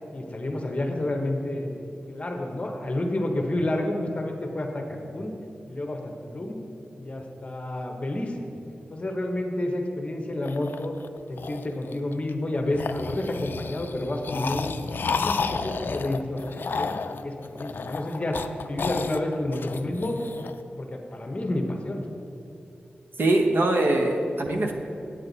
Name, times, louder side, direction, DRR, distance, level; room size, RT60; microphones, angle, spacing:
voice 1, 0.1-5.3 5.7-6.6 7.0-8.4 8.9-11.0 11.3-14.7 15.1-18.4 18.7-20.2 20.7-22.0, left 1 dB, 35° left, 3 dB, 0.9 m, -30 dB
sound 1, 10.4-12.3 12.7-20.6, left 4 dB, 65° left, 0.3 m, -32 dB
voice 2, 23.2-24.7, right 2 dB, 65° right, 2 dB, 0.8 m, -22 dB
9.0 x 7.8 x 4.0 m, 2.7 s
wide cardioid pair, 95°, 4 cm